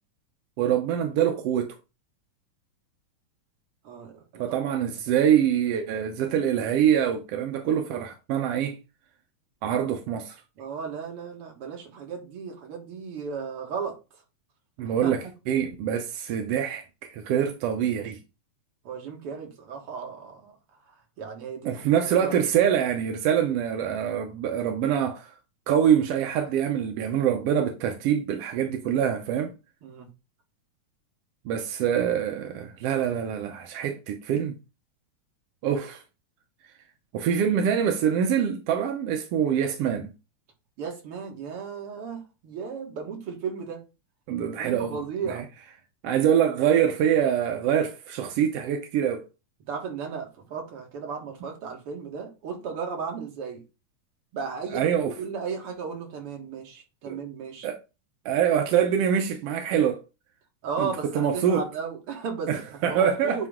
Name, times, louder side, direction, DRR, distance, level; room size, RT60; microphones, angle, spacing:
voice 1, 0.6-1.7 4.4-8.8 9.6-10.4 14.8-16.8 17.1-18.2 21.6-25.3 25.7-29.5 31.4-34.5 35.6-36.0 37.1-40.1 44.3-45.4 46.0-49.2 54.7-55.1 57.1-57.2 57.6-57.8 58.2-60.0 60.8-61.6 62.5-63.5, right 9 dB, 70° right, 1.5 m, -25 dB
voice 2, 3.8-4.6 10.6-14.0 14.8-15.1 18.8-20.6 21.2-21.9 22.2-22.4 29.8-30.1 40.8-43.8 44.6-45.4 49.6-53.6 54.3-57.7 60.6-63.5, right 6 dB, 55° right, 2.3 m, -35 dB
9.1 x 3.1 x 3.6 m
omnidirectional pair, 3.4 m